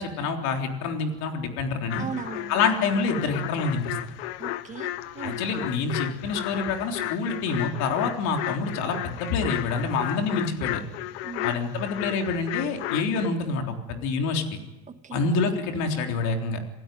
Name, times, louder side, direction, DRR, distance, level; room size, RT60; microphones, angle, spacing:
voice 1, 0.0-2.1 2.5-3.9 5.2-10.8 11.4-14.4 15.1-16.6, left 4 dB, 60° left, 3 dB, 3.6 m, -27 dB
sound 1, 1.9-13.3, left 15 dB, 85° left, 1.0 m, -34 dB
voice 2, 2.0-2.6 4.4-5.4 11.2-11.5 14.9-15.2, right 6 dB, 25° right, 8 dB, 1.5 m, -37 dB
27.5 x 16.5 x 9.3 m, 1.0 s
cardioid pair, 150°, 32 cm